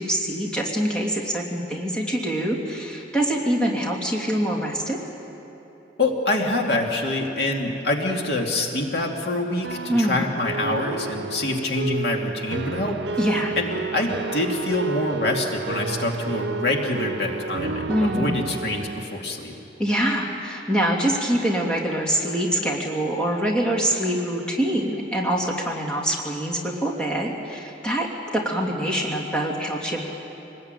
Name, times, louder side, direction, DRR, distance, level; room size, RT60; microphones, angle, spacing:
voice 1, 0.0-5.0 9.9-10.3 13.2-13.5 17.9-18.4 19.8-30.1, right 1 dB, 5° left, -2 dB, 2.7 m, -24 dB
voice 2, 6.0-13.0 13.6-19.5, left 2 dB, 65° left, 1 dB, 2.5 m, -25 dB
sound 1, 8.9-19.0, right 4 dB, 85° right, 0.7 m, -31 dB
25.0 x 20.0 x 9.1 m, 3.0 s
head